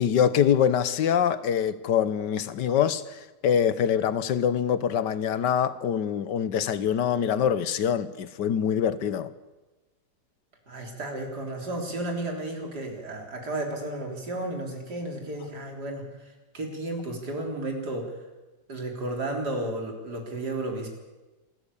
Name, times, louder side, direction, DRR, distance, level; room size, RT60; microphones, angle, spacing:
voice 1, 0.0-9.3, left 8 dB, 85° left, 1.6 m, -24 dB
voice 2, 10.7-16.3 16.5-18.1 18.7-20.9, right 2 dB, 70° right, 4.2 m, -33 dB
27.0 x 14.0 x 8.4 m
omnidirectional pair, 1.8 m